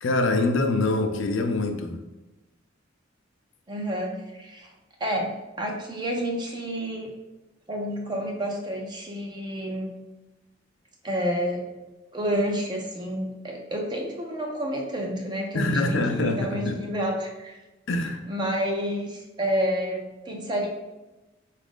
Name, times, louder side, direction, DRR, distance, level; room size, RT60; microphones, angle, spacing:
voice 1, 0.0-2.0 15.5-16.8 17.9-18.2, left 2 dB, 65° left, 6 dB, 0.5 m, -24 dB
voice 2, 3.7-4.7 5.0-7.1 7.7-9.9 11.0-11.7 12.1-17.6 18.3-20.7, equal, 25° right, 1 dB, 0.5 m, -29 dB
4.1 x 2.4 x 3.6 m, 1.1 s
head